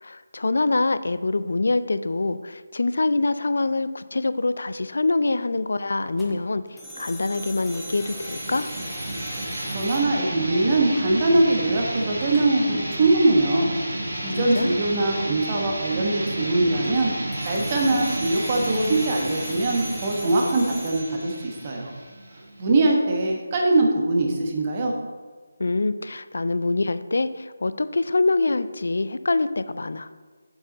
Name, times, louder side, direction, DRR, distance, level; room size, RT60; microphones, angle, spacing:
voice 1, 0.0-6.6 7.0-8.7 14.3-14.8 25.6-30.1, left 3 dB, 60° left, 14 dB, 0.4 m, -25 dB
sound 1, 6.2-11.2 12.2-12.8 16.7-22.1, equal, ahead, 0.9 m, -40 dB
sound 2, 7.4-22.9, right 1 dB, 55° right, 2.3 m, -32 dB
voice 2, 9.7-13.7 14.2-17.1 17.4-21.9 22.6-24.9, right 2 dB, 30° right, 0 dB, 1.2 m, -22 dB
7.7 x 7.3 x 3.9 m, 1.5 s
figure-of-eight pair, 155°, 0 cm